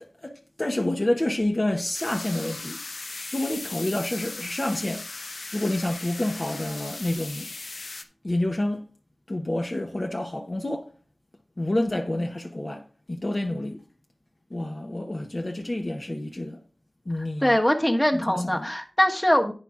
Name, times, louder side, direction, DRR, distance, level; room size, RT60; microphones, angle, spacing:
voice 1, 0.0-2.8 3.3-5.1 5.5-7.5 8.2-8.8 9.3-10.9 11.6-13.8 14.5-16.6 17.1-17.6 18.1-18.7, left 1 dB, 35° left, 0.9 m, -28 dB
sound 1, 1.9-8.0, left 3 dB, 80° left, 0.9 m, -38 dB
voice 2, 17.4-19.5, equal, 15° left, 1.2 m, -22 dB
10.5 x 9.4 x 2.4 m
wide cardioid pair, 75°, 0 cm